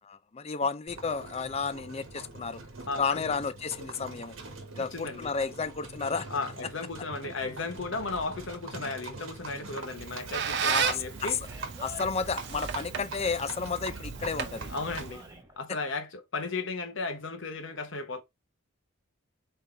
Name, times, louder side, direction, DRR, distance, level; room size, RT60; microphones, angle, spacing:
voice 1, 0.0-2.6 3.0-4.4 4.7-6.3 10.6-11.4 11.8-14.7, left 5 dB, 30° left, 0.4 m, -32 dB
Livestock farm animals working animals, 0.9-15.3, right 3 dB, 70° right, 1.3 m, -43 dB
voice 2, 2.9-3.3 4.8-5.3 6.3-11.4 14.7-15.2 15.6-18.2, left 3 dB, 65° left, 1.1 m, -35 dB
Squeak, 9.8-15.3, right 7 dB, 55° right, 0.6 m, -34 dB
Animal, 10.5-15.6, right 1 dB, 15° right, 1.1 m, -50 dB
4.0 x 3.9 x 3.3 m
head